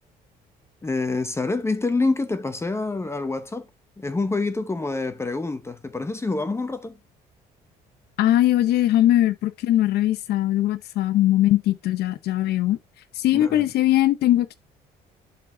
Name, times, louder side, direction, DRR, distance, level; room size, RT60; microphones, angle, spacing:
voice 1, 0.8-3.7 4.0-6.9 13.3-13.7, left 3 dB, 15° left, 0.8 m, -26 dB
voice 2, 8.2-12.8 13.1-14.5, left 13 dB, 70° left, 0.8 m, -20 dB
12.0 x 4.2 x 2.7 m
cardioid pair, 110°, 17 cm